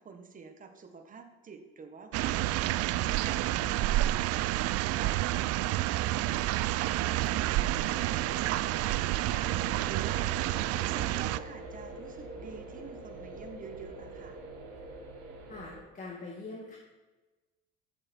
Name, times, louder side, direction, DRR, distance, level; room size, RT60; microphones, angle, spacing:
voice 1, 0.0-4.3 4.9-6.4 6.7-14.4, right 5 dB, 25° right, 6 dB, 1.5 m, -48 dB
sound 1, 2.1-11.4, right 15 dB, 55° right, 0.5 m, -29 dB
sound 2, 7.6-15.8, right 2 dB, 90° right, 3.9 m, -45 dB
voice 2, 15.5-16.8, left 3 dB, 25° left, -3 dB, 2.3 m, -43 dB
13.0 x 7.9 x 4.6 m, 1.2 s
supercardioid pair, 110°, 29 cm